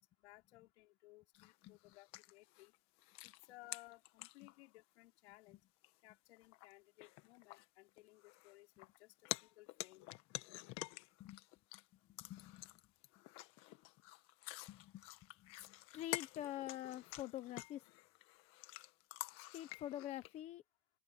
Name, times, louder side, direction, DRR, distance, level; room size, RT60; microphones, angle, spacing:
voice 1, 0.2-2.7 3.2-5.6 6.0-9.1 9.4-10.1, left 19 dB, 55° left, 5.1 m, -61 dB
sound 1, 1.4-4.8 5.3-5.4 5.8-5.9 6.4-6.7 7.0-9.0 9.3-11.8 12.2-20.3, left 19 dB, 35° left, 1.6 m, -50 dB
voice 2, 1.4-1.8 5.5-5.6 11.2-11.4 12.1-12.7 14.7-15.0 15.4-17.8 19.4-20.6, left 13 dB, 15° left, 0.7 m, -47 dB
open air
supercardioid pair, 160°, 40 cm